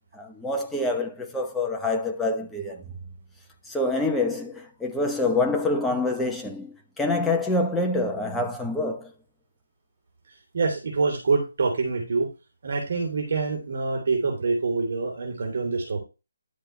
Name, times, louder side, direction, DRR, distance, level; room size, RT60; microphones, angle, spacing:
voice 1, 0.1-2.8 3.7-9.1, left 2 dB, 5° left, 0.9 m, -26 dB
voice 2, 10.5-12.3 12.6-16.0, right 4 dB, 50° right, 3.5 m, -25 dB
10.5 x 6.6 x 3.2 m
hypercardioid pair, 170°, 0 cm